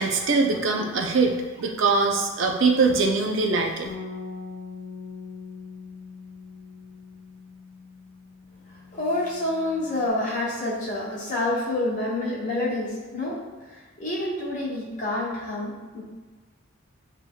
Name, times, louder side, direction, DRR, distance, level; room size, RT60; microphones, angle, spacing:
voice 1, 0.0-3.9, right 4 dB, 60° right, 2 dB, 0.5 m, -22 dB
Bass guitar, 3.8-10.1, left 4 dB, 50° left, 0.7 m, -42 dB
voice 2, 8.9-16.0, left 1 dB, 35° left, -6 dB, 1.2 m, -28 dB
7.8 x 2.9 x 2.3 m, 1.3 s
head